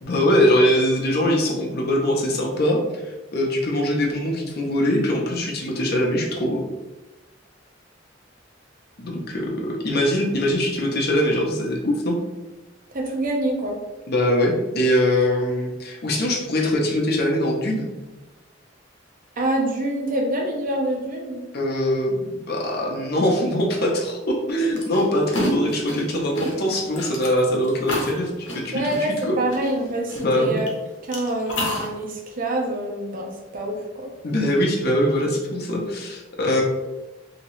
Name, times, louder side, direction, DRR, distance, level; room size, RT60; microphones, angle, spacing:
voice 1, 0.0-6.6 9.0-12.2 14.1-17.9 21.5-29.4 30.2-30.6 34.2-36.6, equal, 55° left, 0 dB, 0.7 m, -22 dB
voice 2, 12.9-13.8 19.4-21.4 28.7-30.7 31.1-34.1, right 1 dB, 45° right, 1 dB, 0.6 m, -26 dB
sound 1, 24.8-30.7 31.1-31.9, left 1 dB, 85° left, 0.8 m, -29 dB
2.9 x 2.8 x 3.1 m, 1.1 s
head